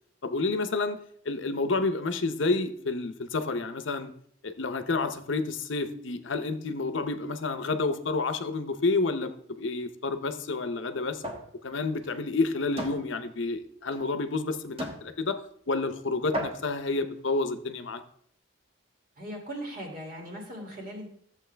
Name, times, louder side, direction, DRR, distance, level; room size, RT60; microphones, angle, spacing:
voice 1, 0.2-1.0 1.2-4.1 4.4-9.3 9.6-11.2 11.6-15.4 15.7-18.0, left 3 dB, 70° left, 10 dB, 0.7 m, -29 dB
sound 1, 11.2-11.5 11.9-12.1 12.8-13.0 13.9-14.0 14.8-15.0 15.9-16.0 16.3-16.8, equal, 30° right, 1.2 m, -34 dB
voice 2, 19.2-21.1, equal, 45° right, 0 dB, 2.4 m, -39 dB
12.5 x 7.4 x 3.4 m, 0.64 s
head